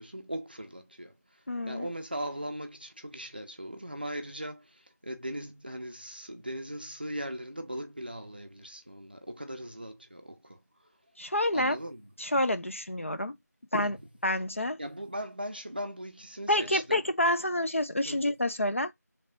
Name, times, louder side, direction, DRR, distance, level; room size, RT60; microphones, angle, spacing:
voice 1, 0.0-10.9 11.5-12.1 13.7-14.0 14.8-17.0 18.0-18.3, equal, 35° right, 0.5 m, -39 dB
voice 2, 1.5-1.9 11.2-11.8 12.2-13.4 13.7-14.0 14.2-14.8 16.5-18.9, left 1 dB, 50° left, 0.5 m, -28 dB
3.2 x 2.6 x 3.0 m
figure-of-eight pair, 175°, 9 cm